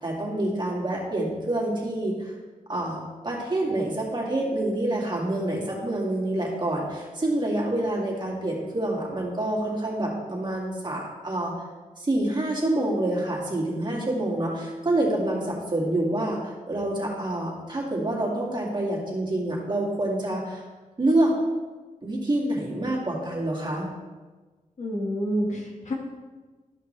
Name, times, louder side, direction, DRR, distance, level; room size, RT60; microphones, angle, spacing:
voice 1, 0.0-2.3 2.7-11.5 12.0-20.6 21.0-21.3 22.0-23.9, right 1 dB, 35° right, -3 dB, 2.4 m, -27 dB
voice 2, 24.8-25.9, equal, 55° left, -2 dB, 1.9 m, -28 dB
13.0 x 5.6 x 3.4 m, 1.3 s
wide cardioid pair, 80°, 14 cm